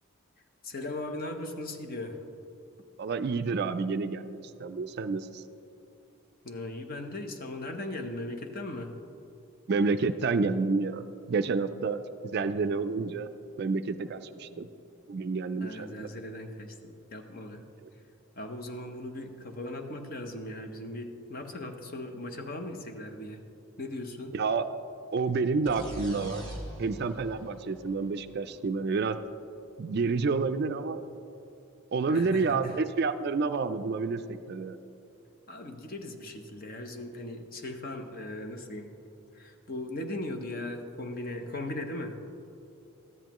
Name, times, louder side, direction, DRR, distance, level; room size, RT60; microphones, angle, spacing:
voice 1, 0.6-2.2 6.4-8.9 14.5-14.7 15.6-17.6 18.4-23.4 23.8-24.3 32.1-32.8 35.5-38.9 39.3-42.1, left 1 dB, 40° left, 5 dB, 0.8 m, -38 dB
voice 2, 3.0-5.4 9.7-13.3 13.6-14.7 15.1-16.1 24.3-24.7 25.1-26.4 26.8-29.2 29.8-31.0 31.9-34.8, right 4 dB, 50° right, 10 dB, 0.3 m, -29 dB
sound 1, 25.7-29.3, equal, 20° left, 1.3 m, -42 dB
13.5 x 10.5 x 3.0 m, 2.8 s
head